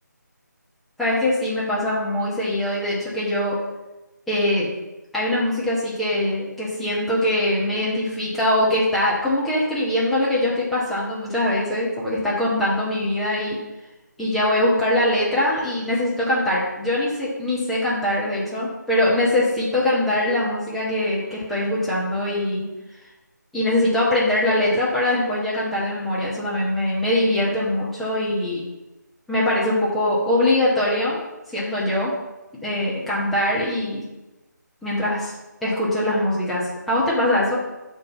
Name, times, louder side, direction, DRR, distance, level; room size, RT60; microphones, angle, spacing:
voice 1, 1.0-3.6 4.3-4.7 5.1-13.6 14.2-22.6 23.5-28.6 29.3-31.2 31.5-32.1 32.6-34.0 34.8-35.3 35.6-37.6, left 1 dB, ahead, -9 dB, 0.5 m, -22 dB
6.5 x 4.2 x 5.4 m, 1.1 s
figure-of-eight pair, 155°, 10 cm